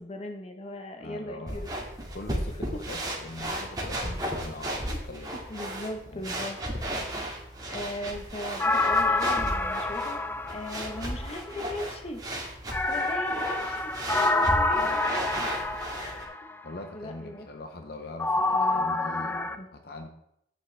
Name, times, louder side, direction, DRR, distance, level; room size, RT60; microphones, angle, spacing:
voice 1, 0.0-1.7 2.7-2.8 3.9-4.1 4.9-5.0 5.5-6.6 7.7-12.2 12.9-15.1 16.0-16.4 16.9-17.5 18.5-19.7, left 1 dB, 35° left, 4 dB, 1.0 m, -39 dB
voice 2, 1.0-1.7 2.1-5.3 6.1-6.3 14.7-15.1 16.6-20.1, left 2 dB, 60° left, 5 dB, 0.8 m, -42 dB
sound 1, 1.5-16.2, right 1 dB, 20° right, 1.9 m, -35 dB
sound 2, 8.6-11.4 12.7-16.5 18.2-19.5, left 2 dB, 10° left, 0.4 m, -27 dB
10.0 x 8.1 x 3.4 m, 0.78 s
head